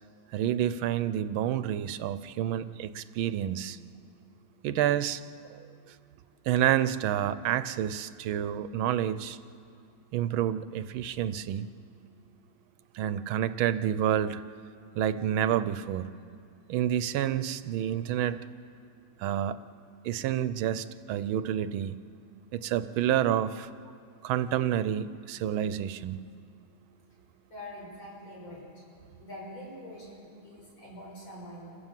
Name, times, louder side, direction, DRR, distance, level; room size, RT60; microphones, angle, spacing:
voice 1, 0.3-3.8 4.6-5.2 6.5-9.4 10.1-11.7 12.9-14.4 15.0-16.1 16.7-18.4 19.2-19.6 20.0-22.0 22.5-23.7 24.2-26.2, right 10 dB, 75° right, 14 dB, 1.5 m, -29 dB
voice 2, 27.5-28.6 29.2-31.8, left 1 dB, 65° left, -4 dB, 7.8 m, -44 dB
28.5 x 15.0 x 7.4 m, 2.4 s
omnidirectional pair, 2.3 m